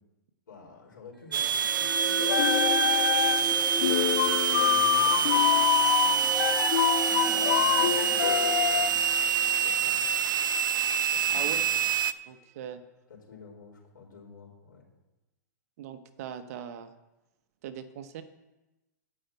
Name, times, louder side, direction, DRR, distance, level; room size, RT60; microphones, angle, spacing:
voice 1, 0.5-2.5 3.1-6.6 7.5-9.1 9.6-10.2 11.1-11.8 13.1-14.9, left 4 dB, 85° left, -1 dB, 4.1 m, -50 dB
sound 1, 1.3-10.8, left 1 dB, ahead, 0.8 m, -37 dB
sound 2, 1.3-12.1, right 8 dB, 85° right, 0.5 m, -26 dB
sound 3, 2.2-3.6 3.8-8.9, left 13 dB, 60° left, 0.4 m, -26 dB
voice 2, 12.3-12.8 15.8-16.9 17.6-18.2, right 9 dB, 50° right, 10 dB, 0.9 m, -40 dB
9.9 x 5.7 x 7.9 m, 1.0 s
hypercardioid pair, 145°, 10 cm